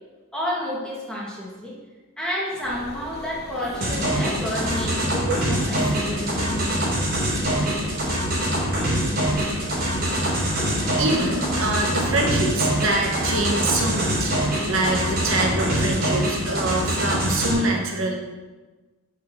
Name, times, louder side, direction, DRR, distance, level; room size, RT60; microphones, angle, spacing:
voice 1, 0.3-1.7 2.2-7.0, equal, 5° left, -5 dB, 2.0 m, -30 dB
sound 1, 2.6-16.1, left 2 dB, 50° left, 1.2 m, -37 dB
sound 2, 3.8-17.5, right 1 dB, 45° right, 3.4 m, -24 dB
voice 2, 11.0-18.2, right 2 dB, 75° right, 1 dB, 1.5 m, -25 dB
7.9 x 6.1 x 6.5 m, 1.3 s
head